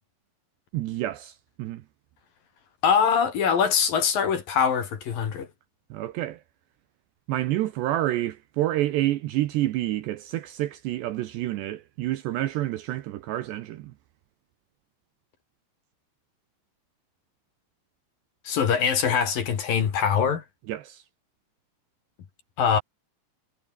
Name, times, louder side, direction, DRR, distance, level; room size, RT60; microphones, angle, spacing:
voice 1, 0.7-1.8 5.9-6.4 7.3-13.9 20.7-21.0, right 15 dB, 75° right, 2.8 m, -28 dB
voice 2, 2.8-5.5 18.5-20.4 22.6-22.8, left 7 dB, 50° left, 3.7 m, -23 dB
omnidirectional pair, 5.8 m